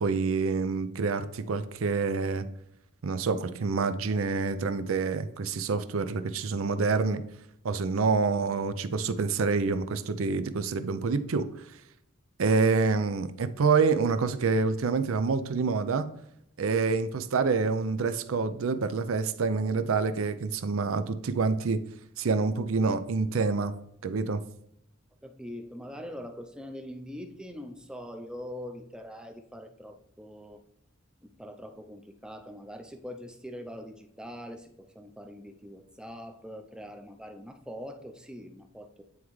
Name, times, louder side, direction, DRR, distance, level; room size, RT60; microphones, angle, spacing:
voice 1, 0.0-2.5 3.0-7.2 7.6-11.5 12.4-16.1 16.6-21.8 22.2-23.7 24.0-24.4, right 4 dB, 70° right, 11 dB, 0.5 m, -27 dB
voice 2, 25.2-30.6 31.2-34.7 35.0-39.0, equal, 5° right, 5 dB, 0.5 m, -43 dB
9.5 x 3.6 x 3.1 m, 0.77 s
head